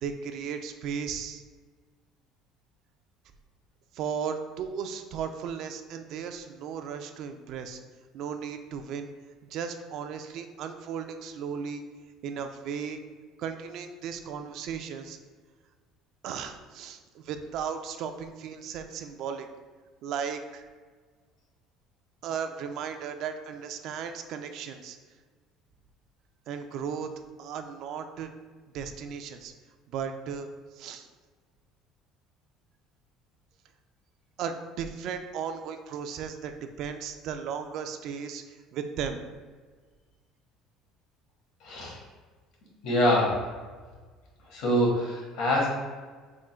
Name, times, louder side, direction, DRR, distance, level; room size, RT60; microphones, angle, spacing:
voice 1, 0.0-1.4 3.9-7.8 8.1-9.1 9.5-11.8 12.2-13.0 13.4-15.2 16.2-19.5 20.0-20.6 22.2-25.0 26.5-27.1 27.4-28.3 28.7-29.5 29.9-30.5 30.7-31.1 34.4-39.2, right 7 dB, 55° right, 7 dB, 0.3 m, -35 dB
voice 2, 41.6-42.0 42.8-43.5 44.5-45.7, left 1 dB, 65° left, -3 dB, 1.3 m, -25 dB
3.6 x 2.1 x 4.2 m, 1.5 s
cardioid pair, 145°, 0 cm